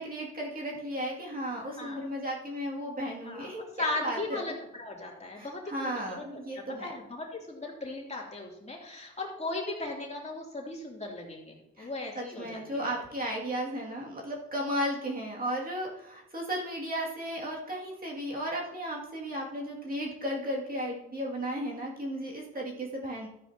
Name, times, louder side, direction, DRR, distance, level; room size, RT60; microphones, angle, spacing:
voice 1, 0.0-4.5 5.4-6.9 11.8-11.9 12.1-23.3, equal, 30° right, -3 dB, 2.4 m, -35 dB
voice 2, 1.6-2.0 3.2-4.5 4.8-6.2 6.5-12.8 22.5-22.7, left 2 dB, 20° left, -2 dB, 2.9 m, -37 dB
13.5 x 9.4 x 2.9 m, 0.83 s
cardioid pair, 90°, 30 cm